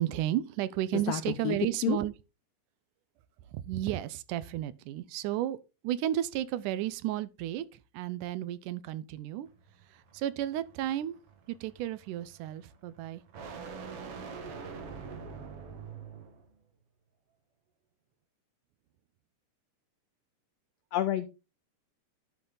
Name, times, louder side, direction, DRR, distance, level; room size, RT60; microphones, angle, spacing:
voice 1, 0.0-2.1 3.5-5.6 5.8-9.5 9.9-11.2 11.5-13.2, right 13 dB, 85° right, 2.2 m, -33 dB
voice 2, 0.9-2.0 20.9-21.3, left 12 dB, 80° left, 1.4 m, -30 dB
sound 1, 9.5-16.5, right 5 dB, 55° right, 2.1 m, -45 dB
11.5 x 5.7 x 3.9 m
omnidirectional pair, 3.6 m